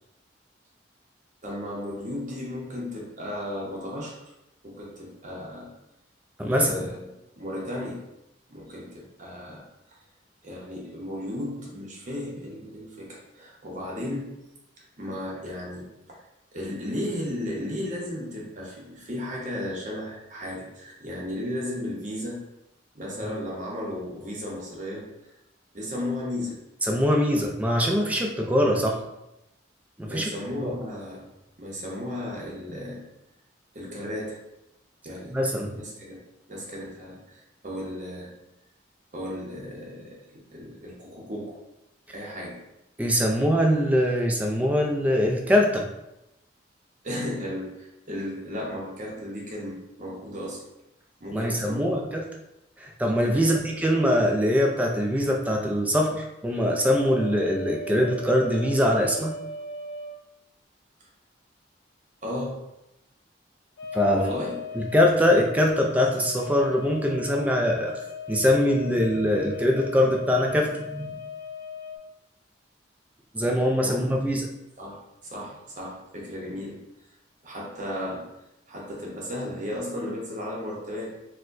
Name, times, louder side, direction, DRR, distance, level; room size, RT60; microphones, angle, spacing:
voice 1, 1.4-4.1 4.6-5.7 6.5-8.0 8.5-9.7 10.4-14.3 15.0-16.2 16.5-22.4 22.9-25.1 25.7-26.6 30.0-31.3 31.6-33.0 33.7-34.4 35.0-35.4 35.7-36.2 36.5-38.3 39.1-41.6 42.1-42.6 47.0-50.6 51.2-52.1 53.3-53.8 62.2-62.6 64.1-64.6 73.8-74.0 74.8-76.8 77.4-78.3 78.7-81.1, left 1 dB, 40° right, -3 dB, 0.7 m, -35 dB
voice 2, 6.4-6.8 26.9-29.0 30.0-30.3 30.6-30.7 35.3-35.7 43.0-45.9 51.3-52.3 52.8-59.3 63.9-64.3 64.7-68.0 68.3-71.2 73.3-74.5, equal, 10° right, 1 dB, 0.3 m, -23 dB
sound 1, 56.6-60.2 63.8-72.0, left 3 dB, 85° left, 0.5 m, -38 dB
4.4 x 2.2 x 2.5 m, 0.89 s
head